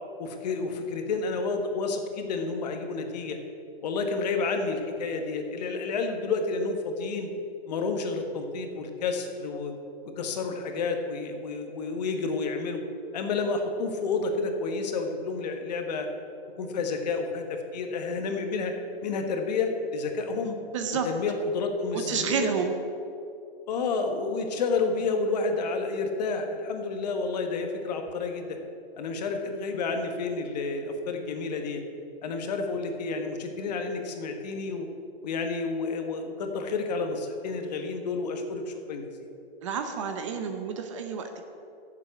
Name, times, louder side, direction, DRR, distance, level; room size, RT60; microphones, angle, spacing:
voice 1, 0.2-3.4 3.8-7.3 7.7-9.7 10.2-12.8 13.1-16.1 16.6-18.7 19.0-20.6 21.0-22.5 23.7-28.6 29.0-31.8 32.2-34.9 35.2-39.0, left 4 dB, 40° left, 5 dB, 1.4 m, -30 dB
voice 2, 20.7-21.1 21.9-22.7 39.6-41.4, right 6 dB, 30° right, 6 dB, 0.7 m, -30 dB
10.5 x 7.6 x 8.2 m, 2.6 s
hypercardioid pair, 160°, 32 cm